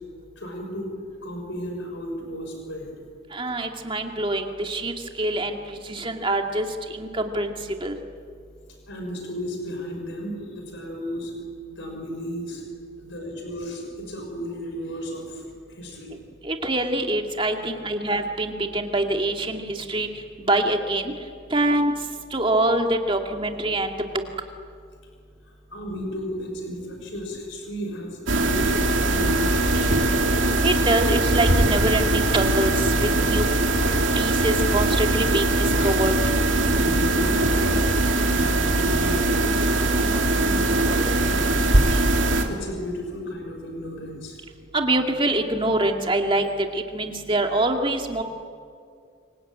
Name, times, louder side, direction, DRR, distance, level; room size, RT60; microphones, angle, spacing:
voice 1, 0.4-0.9 1.2-2.9 8.9-11.3 11.6-12.6 13.0-15.4 15.7-16.1 25.7-30.3 36.7-37.9 38.3-44.4, equal, 60° left, 2 dB, 6.1 m, -34 dB
voice 2, 3.3-5.6 5.9-6.7 6.9-7.5 7.8-7.9 16.4-19.6 19.9-20.1 20.5-21.1 21.5-21.9 22.3-23.9 30.6-32.7 33.0-33.5 34.2-35.5 35.8-36.1 44.7-46.5 46.7-48.2, right 1 dB, 25° right, 4 dB, 2.2 m, -24 dB
sound 1, 28.3-42.4, right 2 dB, 65° right, 2.7 m, -21 dB
27.0 x 24.0 x 9.2 m, 2.2 s
head